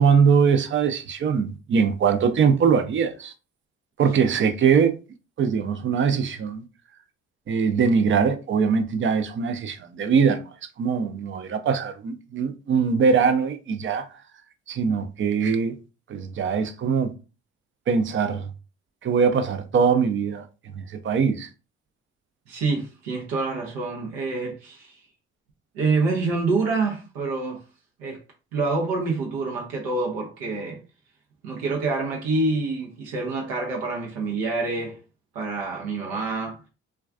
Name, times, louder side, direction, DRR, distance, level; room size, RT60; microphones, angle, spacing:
voice 1, 0.0-3.3 4.0-5.0 5.4-6.7 7.5-14.1 14.7-15.8 16.1-17.1 17.9-18.5 19.0-21.5, right 6 dB, 35° right, 0.4 m, -22 dB
voice 2, 22.5-25.0 25.7-27.6 28.0-28.2 28.5-30.8 31.4-35.0 35.3-36.6, right 3 dB, 80° right, 0.6 m, -26 dB
2.3 x 2.3 x 2.3 m
hypercardioid pair, 55°, 34 cm